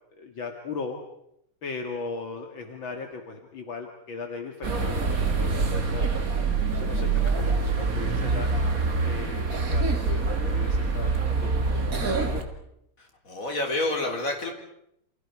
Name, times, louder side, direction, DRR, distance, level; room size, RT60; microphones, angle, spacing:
voice 1, 0.1-1.0 1.6-6.1 6.7-8.5 9.0-12.5, left 4 dB, 65° left, 4 dB, 2.7 m, -38 dB
sound 1, 4.6-12.4, right 4 dB, 40° right, 2.7 m, -25 dB
voice 2, 13.0-14.5, left 2 dB, 40° left, 3 dB, 4.0 m, -29 dB
29.0 x 29.0 x 4.8 m, 0.75 s
omnidirectional pair, 2.4 m